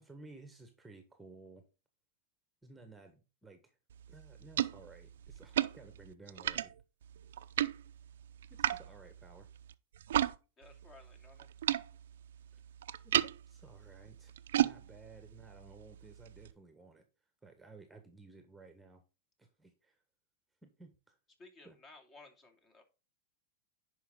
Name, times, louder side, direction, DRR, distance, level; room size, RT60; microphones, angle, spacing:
voice 1, 0.0-1.6 2.6-3.8 4.1-6.7 8.5-9.5 12.5-12.6 13.0-13.2 13.5-17.0 17.4-19.0 19.4-20.0 20.6-21.2 21.6-21.8, right 3 dB, 5° right, 1.4 m, -56 dB
sound 1, 3.9-10.4 10.6-16.5, right 11 dB, 80° right, 0.6 m, -36 dB
voice 2, 10.6-11.5 21.4-22.8, left 3 dB, 30° left, 2.7 m, -57 dB
10.0 x 5.4 x 3.8 m
hypercardioid pair, 120°, 0 cm